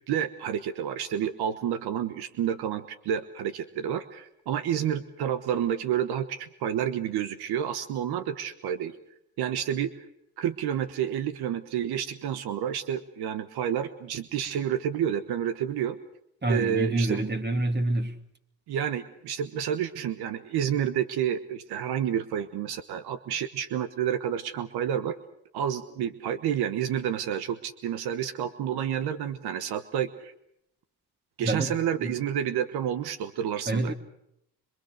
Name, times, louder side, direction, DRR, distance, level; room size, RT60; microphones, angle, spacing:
voice 1, 0.1-9.0 9.4-9.9 10.4-16.0 16.5-17.2 18.7-25.1 25.5-30.3 31.4-33.9, right 9 dB, 80° right, 1.3 m, -29 dB
voice 2, 16.4-18.2 31.4-32.1 33.7-33.9, right 2 dB, 25° right, 2.8 m, -27 dB
25.5 x 24.0 x 6.6 m
cardioid pair, 75°, 37 cm